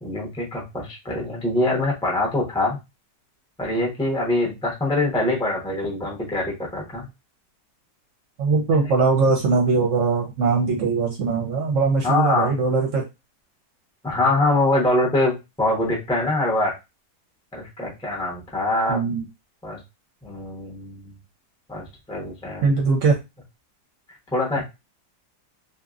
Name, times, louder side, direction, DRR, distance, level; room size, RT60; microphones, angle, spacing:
voice 1, 0.0-2.8 3.6-7.1 12.0-12.5 14.0-16.7 17.5-19.0 19.6-19.8 20.2-21.1 21.7-22.7 24.3-24.6, left 2 dB, 5° left, -3 dB, 0.5 m, -24 dB
voice 2, 8.4-13.0 18.9-19.3 22.6-23.2, right 4 dB, 60° right, 0 dB, 0.9 m, -21 dB
2.8 x 2.5 x 2.4 m, 0.24 s
omnidirectional pair, 1.8 m